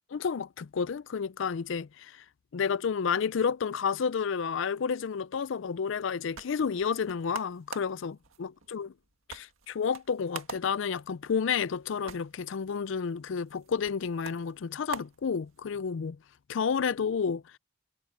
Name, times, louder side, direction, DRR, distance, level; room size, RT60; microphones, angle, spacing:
voice 1, 0.1-2.2 2.5-8.9 9.3-16.2 16.5-17.6, left 6 dB, 60° left, 0.4 m, -31 dB
sound 1, 6.0-15.9, right 5 dB, 80° right, 1.9 m, -47 dB
head